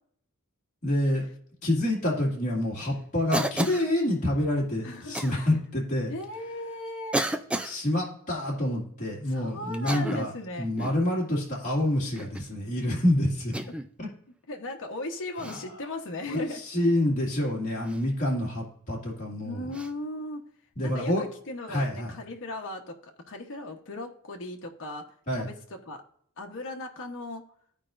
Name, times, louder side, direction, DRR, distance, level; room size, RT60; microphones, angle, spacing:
voice 1, 0.8-1.2 1.6-6.1 7.6-10.3 10.6-13.5 14.0-14.1 16.3-19.6 20.8-21.2 21.7-22.1 25.3-25.5, left 1 dB, 35° left, -4 dB, 2.2 m, -27 dB
Cough, 3.3-3.9 5.1-5.3 6.2-6.3 7.1-7.8 9.7-10.4 10.8-11.1 12.2-12.5 13.5-13.9 15.4-15.6 17.9-18.0 19.7-19.9, right 1 dB, 5° right, 0.4 m, -32 dB
voice 2, 4.8-5.2 6.1-7.2 9.3-10.7 12.8-13.0 13.6-13.7 14.5-16.6 19.4-20.4 20.8-25.0 25.3-26.0 26.4-27.4, left 2 dB, 60° left, 1 dB, 1.1 m, -37 dB
14.5 x 4.9 x 2.6 m, 0.62 s
head